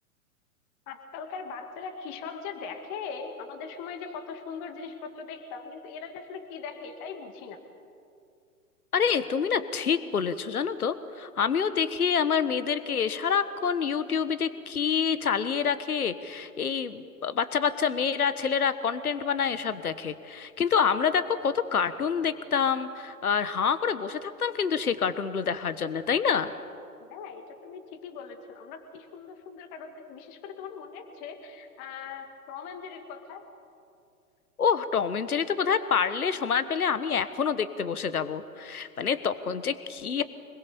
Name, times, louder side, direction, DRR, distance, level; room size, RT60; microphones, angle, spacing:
voice 1, 0.9-7.6 27.0-33.5, left 5 dB, 35° left, 6 dB, 2.1 m, -40 dB
voice 2, 8.9-26.5 34.6-40.2, left 6 dB, 75° left, 13 dB, 1.2 m, -27 dB
25.5 x 21.5 x 6.9 m, 2.5 s
figure-of-eight pair, 105°, 44 cm